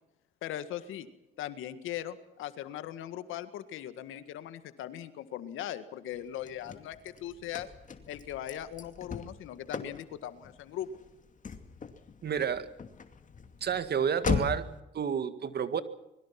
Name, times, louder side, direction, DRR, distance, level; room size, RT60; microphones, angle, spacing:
voice 1, 0.4-1.1 1.4-7.7 8.1-10.9, left 11 dB, 90° left, 11 dB, 1.9 m, -39 dB
Car / Slam, 6.1-14.8, left 6 dB, 40° left, 2.5 m, -39 dB
voice 2, 12.2-12.7 13.6-14.6 14.9-15.8, right 7 dB, 55° right, 12 dB, 1.9 m, -30 dB
25.5 x 22.0 x 6.0 m, 0.94 s
cardioid pair, 90°, 20 cm